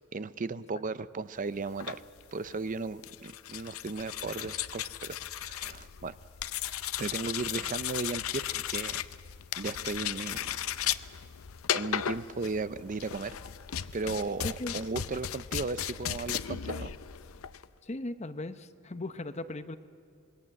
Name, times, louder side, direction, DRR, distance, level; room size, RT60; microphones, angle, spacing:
voice 1, 0.0-2.0 2.3-6.2 7.0-9.0 9.6-10.6 11.0-11.1 11.7-13.4 13.9-16.9, right 3 dB, 40° right, 15 dB, 0.5 m, -36 dB
sound 1, 1.7-17.7, left 10 dB, 80° left, 0.6 m, -36 dB
voice 2, 14.4-14.7 17.8-19.8, left 2 dB, 30° left, 10 dB, 0.8 m, -37 dB
26.5 x 20.0 x 7.7 m, 2.4 s
head